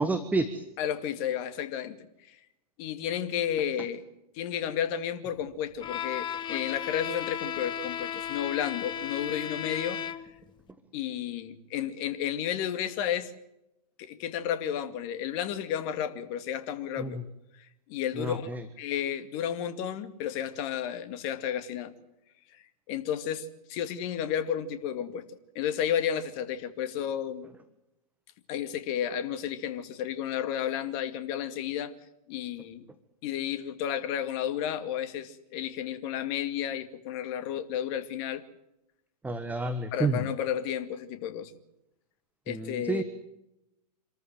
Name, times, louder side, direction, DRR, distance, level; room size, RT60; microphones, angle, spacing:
voice 1, 0.0-0.6 17.0-17.2 18.1-18.6 39.2-40.2 42.5-43.0, right 3 dB, 5° right, 1.4 m, -29 dB
voice 2, 0.8-2.4 2.8-4.1 4.3-10.0 10.9-13.3 14.0-17.2 17.9-18.5 18.8-21.9 22.5-25.2 25.5-27.5 28.5-31.9 32.3-32.8 33.2-38.4 39.9-41.5 42.5-43.0, left 9 dB, 40° left, 2.3 m, -32 dB
Bowed string instrument, 5.8-10.5, left 9 dB, 20° left, 1.2 m, -35 dB
27.0 x 14.0 x 9.2 m
hypercardioid pair, 115°, 21 cm